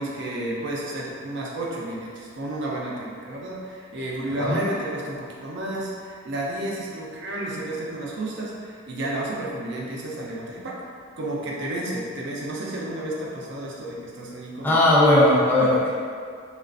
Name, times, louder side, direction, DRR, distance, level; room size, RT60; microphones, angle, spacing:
voice 1, 0.0-10.9 11.2-14.8 15.2-15.3 15.6-15.7, right 1 dB, 55° right, -3 dB, 0.5 m, -31 dB
voice 2, 14.6-15.9, left 1 dB, 10° left, -8 dB, 0.5 m, -18 dB
3.1 x 2.4 x 2.4 m, 2.2 s
head